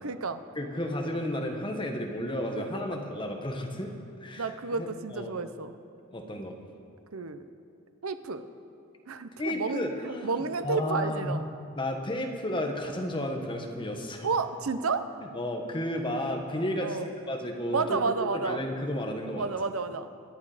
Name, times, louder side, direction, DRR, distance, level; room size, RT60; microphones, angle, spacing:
voice 1, 0.0-0.4 4.4-5.7 7.1-7.4 8.0-8.4 9.1-11.4 14.2-15.1 16.8-17.1 17.7-18.6 19.4-20.1, right 4 dB, 85° right, 10 dB, 0.8 m, -31 dB
voice 2, 0.5-3.9 4.2-5.4 6.1-6.6 9.4-11.3 11.7-14.3 15.3-17.0 17.3-19.5, left 1 dB, 25° left, 2 dB, 1.4 m, -32 dB
24.0 x 8.5 x 5.0 m, 2.5 s
head